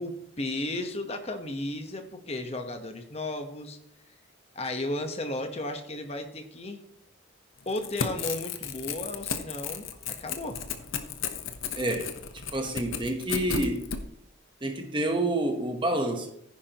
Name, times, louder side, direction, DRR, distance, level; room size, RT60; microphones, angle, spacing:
voice 1, 0.0-3.8 4.5-6.8 7.7-10.6, left 1 dB, 30° left, 6 dB, 1.2 m, -34 dB
Crackle / Tearing, 7.6-14.0, left 6 dB, 80° left, 1.0 m, -34 dB
voice 2, 11.8-12.1 12.5-13.8 14.6-16.3, right 1 dB, 25° right, 5 dB, 1.2 m, -28 dB
14.5 x 10.5 x 3.0 m, 0.72 s
head